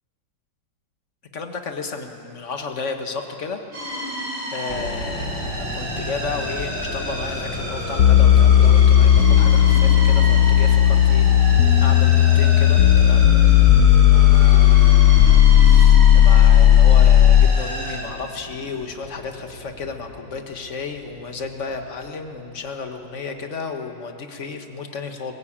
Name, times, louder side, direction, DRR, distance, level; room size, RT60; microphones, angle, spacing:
voice 1, 1.3-3.6 4.5-13.3 14.0-25.3, left 4 dB, 40° left, 5 dB, 1.8 m, -33 dB
sound 1, 3.7-18.0, right 1 dB, 65° right, 6.2 m, -31 dB
sound 2, 4.7-22.9 23.1-23.2, left 1 dB, 80° left, 2.6 m, -36 dB
sound 3, 8.0-17.6, left 10 dB, 65° left, 1.1 m, -13 dB
21.5 x 21.5 x 8.8 m, 2.7 s
omnidirectional pair, 2.0 m